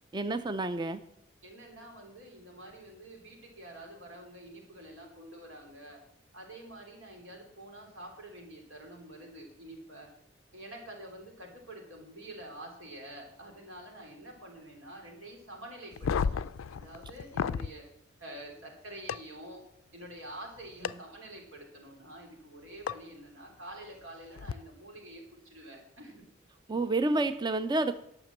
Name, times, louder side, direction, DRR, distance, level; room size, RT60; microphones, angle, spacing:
voice 1, 0.1-1.0 26.7-28.0, right 2 dB, 20° right, 11 dB, 0.4 m, -29 dB
voice 2, 1.4-6.0 6.3-10.1 10.5-16.4 16.7-17.8 18.2-19.6 19.9-26.2, right 1 dB, 90° right, 1 dB, 3.4 m, -47 dB
sound 1, 15.9-17.7 19.1-19.2 20.8-20.9 22.9-23.0 24.4-24.5, left 6 dB, 85° left, 0.4 m, -31 dB
10.5 x 5.9 x 7.3 m, 0.72 s
head